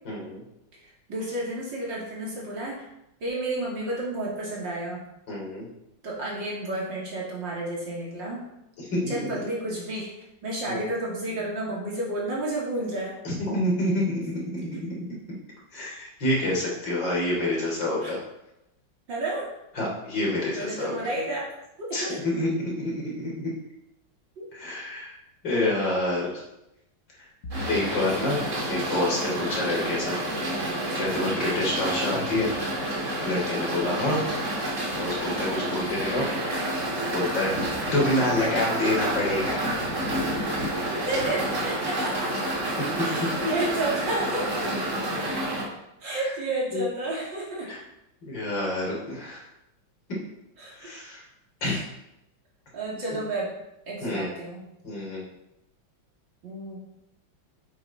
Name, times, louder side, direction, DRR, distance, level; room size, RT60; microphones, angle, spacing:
voice 1, 0.1-0.4 5.3-5.6 8.9-9.4 10.7-10.8 13.2-15.0 15.7-18.2 19.8-21.1 21.9-22.5 22.8-23.5 24.5-25.1 25.4-26.3 27.2-27.3 27.7-28.4 28.7-30.2 30.9-32.5 33.2-34.2 34.9-36.3 36.8-37.6 37.9-39.8 46.1-46.3 46.7-46.9 47.7-47.8 48.2-49.4 50.7-51.2 51.6-51.8 54.0-54.3 54.8-55.2, left 1 dB, 70° left, -3 dB, 3.9 m, -27 dB
voice 2, 1.1-2.8 3.2-5.0 6.0-8.4 9.1-10.1 10.4-13.2 18.0-18.1 19.1-19.5 20.6-21.5 21.8-22.2 24.4-24.5 31.2-31.4 33.8-34.2 40.9-42.3 43.0-44.7 46.0-47.7 50.6-50.9 51.6-51.8 52.7-53.5 53.9-54.6 56.4-56.8, right 1 dB, 70° right, -4 dB, 3.5 m, -31 dB
sound 1, 27.4-33.4, equal, 50° left, 1.5 m, -43 dB
sound 2, 27.5-45.6, right 1 dB, 40° right, 2.3 m, -29 dB
8.8 x 8.1 x 4.3 m, 0.87 s
omnidirectional pair, 2.1 m